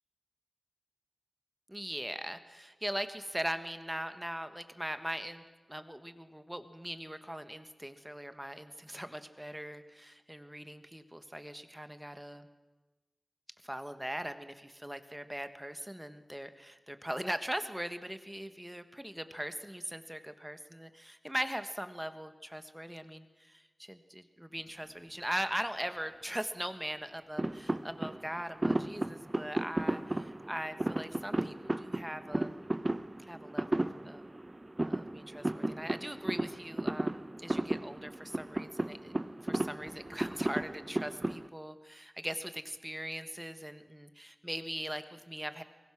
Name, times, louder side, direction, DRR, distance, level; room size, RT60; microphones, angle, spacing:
voice 1, 1.7-5.4 5.7-12.5 13.6-32.6 33.2-34.2 34.9-39.1 39.4-45.6, equal, 10° right, 10 dB, 1.4 m, -40 dB
sound 1, 27.4-41.5, right 1 dB, 25° right, 0.7 m, -35 dB
24.0 x 21.0 x 6.1 m, 1.2 s
wide cardioid pair, 85°, 0 cm